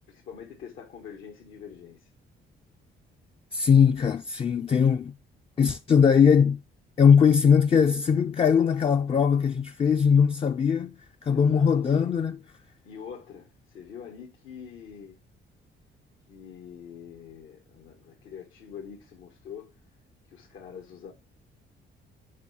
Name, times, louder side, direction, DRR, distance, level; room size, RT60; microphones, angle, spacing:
voice 1, 0.1-2.1 11.3-12.1 12.8-15.2 16.3-19.8 20.3-21.1, left 7 dB, 85° left, 1.7 m, -44 dB
voice 2, 3.5-5.1 5.6-6.6 7.0-11.0 11.2-12.4, left 7 dB, 30° left, 0.4 m, -20 dB
7.4 x 4.7 x 4.2 m
cardioid pair, 90°, 20 cm